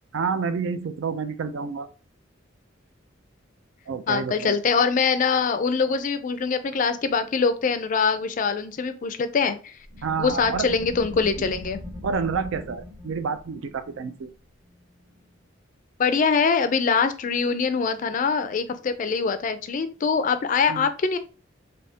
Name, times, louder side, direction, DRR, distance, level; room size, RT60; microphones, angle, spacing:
voice 1, 0.1-1.9 3.9-4.6 10.0-10.7 12.0-14.3 20.7-20.9, right 5 dB, 75° right, 0.4 m, -29 dB
voice 2, 4.1-9.8 10.2-11.8 16.0-21.2, left 5 dB, 40° left, 0.3 m, -23 dB
sound 1, 9.8-15.2, left 1 dB, 20° right, 0.5 m, -40 dB
3.4 x 2.7 x 2.7 m
head